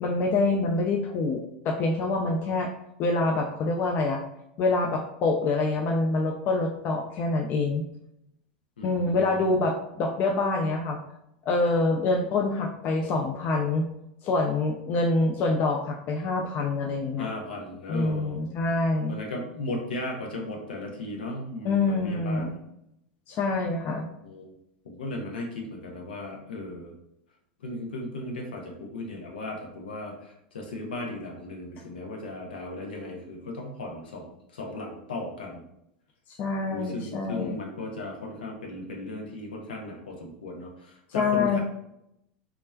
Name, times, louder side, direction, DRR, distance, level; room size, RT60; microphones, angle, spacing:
voice 1, 0.0-2.7 3.0-4.2 4.6-7.8 8.8-11.0 11.4-13.9 14.2-17.3 17.9-19.2 21.6-22.6 23.3-24.1 36.4-37.6 41.1-41.6, left 3 dB, 40° left, 2 dB, 0.4 m, -26 dB
voice 2, 8.8-9.7 17.2-18.4 19.1-22.6 24.2-24.5 24.8-26.9 27.6-35.6 36.7-41.6, left 2 dB, 75° left, 0 dB, 0.7 m, -36 dB
3.0 x 2.3 x 2.2 m, 0.78 s
hypercardioid pair, 90°, 5 cm